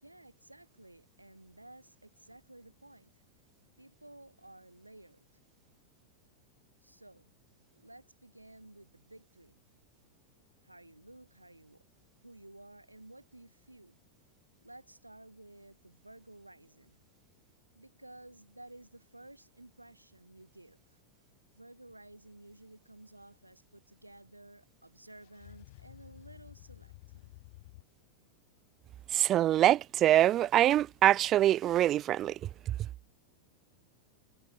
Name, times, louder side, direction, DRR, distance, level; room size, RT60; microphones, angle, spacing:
voice 1, 0.0-3.1 3.8-5.3 6.8-7.3 7.7-9.6 10.6-11.8 12.2-14.0 14.6-17.0 17.7-20.8 21.5-27.3, right 1 dB, 85° right, 6.1 m, -54 dB
sound 1, 25.1-27.8, left 23 dB, 50° left, 6.2 m, -53 dB
voice 2, 29.1-32.3, right 12 dB, 30° right, 0.5 m, -24 dB
figure-of-eight pair, 90°, 0 cm